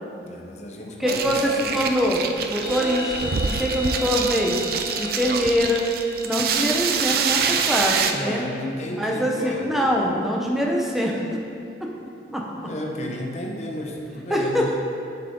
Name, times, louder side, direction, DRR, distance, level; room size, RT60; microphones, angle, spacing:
voice 1, 0.2-1.8 7.9-10.1 12.6-14.7, left 1 dB, 40° left, 0 dB, 0.8 m, -33 dB
voice 2, 1.0-2.2 2.5-4.6 5.0-5.9 6.2-8.4 9.0-11.2 12.3-12.4 14.3-14.8, equal, ahead, -2 dB, 0.6 m, -23 dB
sound 1, 1.1-8.1, right 6 dB, 55° right, 0.4 m, -26 dB
sound 2, 2.6-8.2, equal, 90° left, 1.7 m, -35 dB
7.4 x 5.8 x 3.7 m, 2.6 s
head